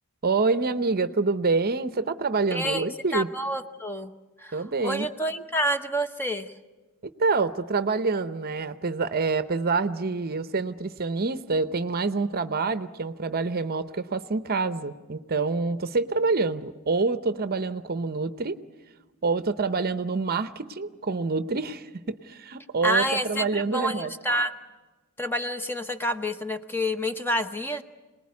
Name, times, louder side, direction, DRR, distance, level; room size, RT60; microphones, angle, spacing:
voice 1, 0.2-3.3 4.5-5.1 7.2-18.6 19.2-24.1, right 4 dB, 45° right, 12 dB, 0.7 m, -27 dB
voice 2, 2.5-2.9 3.1-4.1 4.4-6.5 22.8-24.5 25.2-27.8, equal, 10° left, 8 dB, 0.9 m, -28 dB
27.0 x 19.5 x 9.6 m, 1.3 s
head